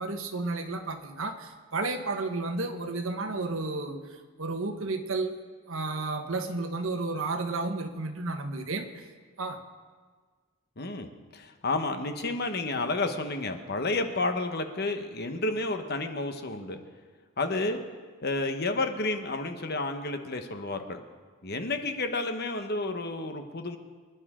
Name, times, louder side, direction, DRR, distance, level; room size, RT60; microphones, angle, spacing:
voice 1, 0.0-4.0 4.4-5.3 5.7-9.0 9.4-9.6, right 3 dB, 70° right, 6 dB, 1.3 m, -32 dB
voice 2, 10.8-16.8 17.4-17.8 18.2-21.0 21.4-23.8, left 2 dB, 50° left, 6 dB, 1.1 m, -31 dB
25.0 x 10.5 x 3.7 m, 1.5 s
head